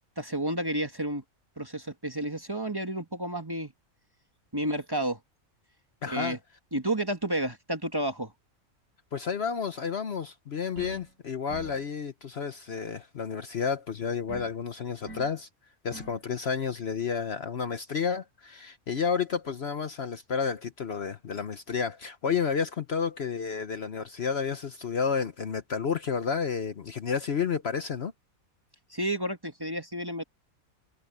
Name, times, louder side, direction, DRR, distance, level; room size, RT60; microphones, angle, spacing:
voice 1, 0.2-1.2 1.6-3.7 4.5-5.2 6.1-6.4 6.7-8.3 28.9-30.2, right 1 dB, 15° right, 1.4 m, -31 dB
voice 2, 6.0-6.4 9.1-15.5 15.8-28.1, left 6 dB, 50° left, 1.1 m, -31 dB
sound 1, 10.8-11.1 11.5-11.9 14.3-14.6 15.1-15.4 15.9-16.2, right 2 dB, 75° right, 7.0 m, -44 dB
omnidirectional pair, 1.4 m